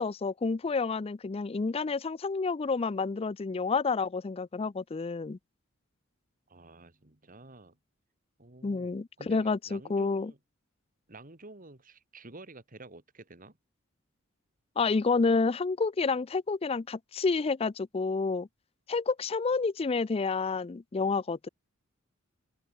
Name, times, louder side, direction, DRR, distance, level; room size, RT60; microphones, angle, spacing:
voice 1, 0.0-5.4 8.6-10.3 14.8-18.5 18.9-21.5, left 4 dB, 30° left, 0.4 m, -29 dB
voice 2, 6.5-7.8 8.4-10.4 11.1-13.6, right 2 dB, 40° right, 2.4 m, -50 dB
open air
head